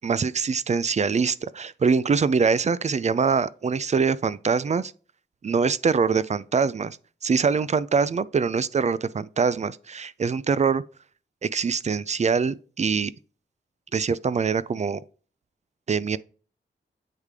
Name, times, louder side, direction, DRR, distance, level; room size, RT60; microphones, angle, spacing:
voice 1, 0.0-4.9 5.4-7.0 7.2-10.8 11.4-13.1 13.9-15.0 15.9-16.2, right 5 dB, 35° right, 0.4 m, -24 dB
8.3 x 3.2 x 3.5 m
cardioid pair, 55°, 20 cm